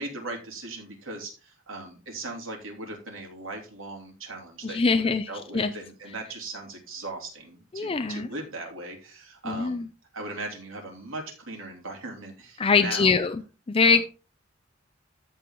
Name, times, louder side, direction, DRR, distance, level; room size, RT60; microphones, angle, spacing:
voice 1, 0.0-9.9 10.1-13.2 13.8-14.0, right 2 dB, 85° right, 1 dB, 3.3 m, -38 dB
voice 2, 4.6-5.7 7.7-8.3 9.5-9.9 12.6-13.4 13.7-14.0, left 4 dB, 30° left, 9 dB, 0.4 m, -23 dB
13.5 x 4.6 x 3.8 m, 0.33 s
head